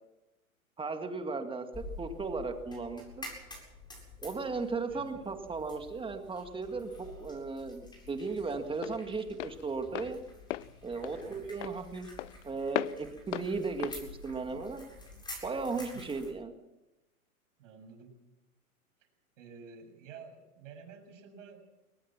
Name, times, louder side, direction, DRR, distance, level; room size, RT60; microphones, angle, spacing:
voice 1, 0.8-3.3 4.2-10.2 10.8-12.1 12.4-14.9 15.4-16.5, right 4 dB, 10° right, 6 dB, 2.0 m, -36 dB
sound 1, 1.7-16.3, left 2 dB, 10° left, 7.7 m, -49 dB
Walk footsteps, 6.5-15.2, left 15 dB, 55° left, 0.7 m, -41 dB
voice 2, 11.2-11.6 15.7-16.1 17.6-18.2 19.0-19.1 19.4-21.7, right 6 dB, 60° right, 6 dB, 6.9 m, -51 dB
23.0 x 19.5 x 6.0 m, 0.98 s
hypercardioid pair, 115°, 43 cm